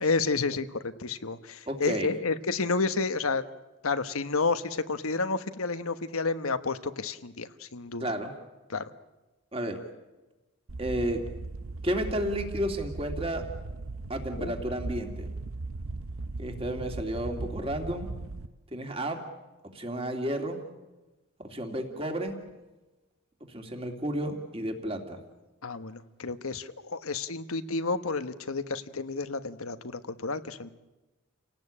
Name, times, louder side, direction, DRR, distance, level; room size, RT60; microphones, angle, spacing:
voice 1, 0.0-3.4 3.8-8.0 8.7-8.8 14.4-14.5 25.6-30.7, left 4 dB, 80° left, 11 dB, 1.2 m, -30 dB
voice 2, 1.7-2.1 8.0-8.3 9.5-9.8 10.8-11.2 11.8-13.4 14.1-15.3 16.4-18.1 18.7-19.2 19.7-20.6 21.4-22.4 23.5-25.2, right 1 dB, 25° right, 4 dB, 2.8 m, -32 dB
sound 1, 10.7-18.5, right 3 dB, 75° right, 0.8 m, -38 dB
29.5 x 18.0 x 8.7 m, 1.1 s
head